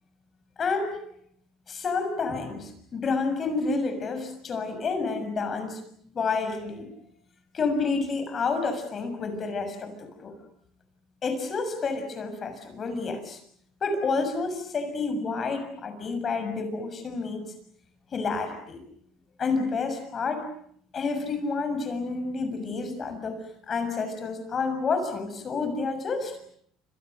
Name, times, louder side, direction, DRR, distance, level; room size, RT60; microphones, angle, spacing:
voice 1, 0.6-1.0 1.7-5.8 6.1-6.9 7.5-10.3 11.2-13.4 13.8-17.5 18.1-18.8 19.4-20.4 20.9-23.4 23.7-26.4, left 4 dB, 30° left, 8 dB, 6.8 m, -29 dB
29.5 x 27.5 x 6.7 m, 0.66 s
cardioid pair, 135°, 0 cm